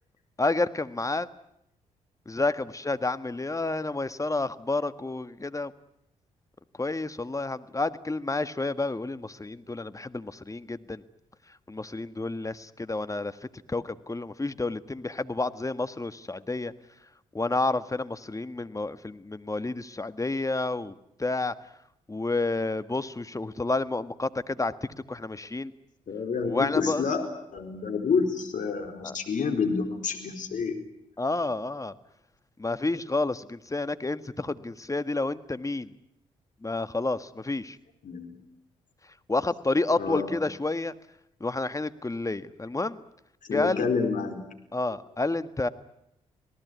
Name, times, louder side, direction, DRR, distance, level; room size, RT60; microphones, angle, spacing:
voice 1, 0.4-1.3 2.2-5.7 6.8-11.0 11.7-13.4 13.7-16.7 17.3-20.9 21.2-21.5 22.1-24.7 25.1-25.7 26.4-27.1 29.0-29.1 31.2-31.9 32.6-35.9 36.6-37.8 39.3-40.9 41.4-43.0 43.5-43.9 44.7-45.7, left 2 dB, 20° left, 12 dB, 1.6 m, -30 dB
voice 2, 26.1-27.3 27.5-30.8 38.0-38.4 40.0-40.3 43.5-44.4, left 5 dB, 55° left, 5 dB, 4.2 m, -28 dB
27.0 x 18.5 x 9.5 m, 0.79 s
hypercardioid pair, 45°, 16 cm